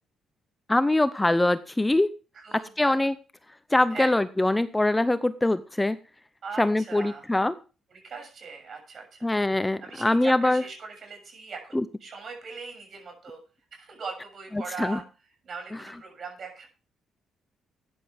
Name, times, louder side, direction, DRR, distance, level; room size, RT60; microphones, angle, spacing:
voice 1, 0.7-2.1 2.8-3.1 3.7-6.0 6.6-7.5 9.2-10.6 11.7-11.8 14.8-15.0, left 2 dB, 10° left, 14 dB, 0.6 m, -23 dB
voice 2, 2.3-3.0 3.9-4.1 6.4-7.2 7.9-9.2 9.8-13.4 13.7-15.0 15.4-16.7, right 4 dB, 50° right, 3 dB, 6.7 m, -40 dB
13.5 x 9.9 x 3.4 m, 0.34 s
cardioid pair, 90°, 0 cm